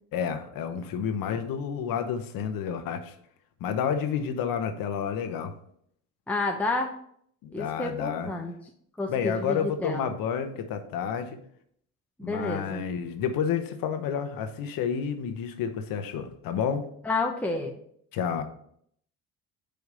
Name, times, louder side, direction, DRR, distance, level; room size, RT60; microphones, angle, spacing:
voice 1, 0.1-3.2 3.6-5.5 7.4-8.3 9.1-11.4 12.2-16.9 18.1-18.4, left 7 dB, 60° left, 8 dB, 1.0 m, -30 dB
voice 2, 6.3-6.9 7.5-8.5 9.0-10.0 12.2-12.8 17.0-17.7, left 2 dB, 5° left, 2 dB, 0.8 m, -30 dB
5.1 x 4.6 x 5.5 m, 0.67 s
supercardioid pair, 75°, 38 cm